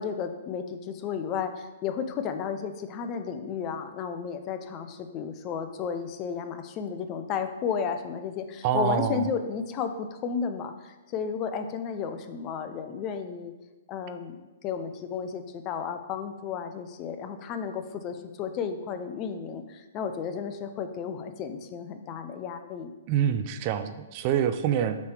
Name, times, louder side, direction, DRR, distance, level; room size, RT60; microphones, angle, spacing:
voice 1, 0.0-13.5 13.9-22.9 23.3-23.4, left 7 dB, 35° left, 8 dB, 0.5 m, -33 dB
voice 2, 8.6-9.3 23.1-25.0, right 9 dB, 40° right, 10 dB, 0.4 m, -26 dB
6.8 x 3.2 x 4.8 m, 1.1 s
hypercardioid pair, 125°, 0 cm